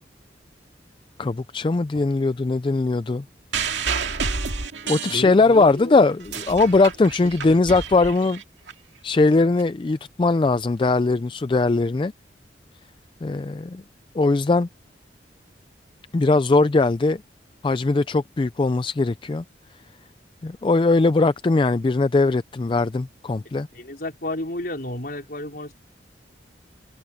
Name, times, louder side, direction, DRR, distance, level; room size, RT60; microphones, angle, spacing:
voice 1, 1.2-3.2 4.9-8.4 9.0-12.1 13.2-13.8 14.1-14.7 16.1-17.2 17.6-19.4 20.4-23.7, left 3 dB, 30° left, 0.4 m, -20 dB
sound 1, 3.5-5.7 6.1-8.7 9.6-9.7, right 5 dB, 90° right, 2.3 m, -29 dB
voice 2, 5.1-6.0 6.6-6.7 7.2-7.6 23.7-25.7, left 1 dB, 55° left, 4.6 m, -32 dB
head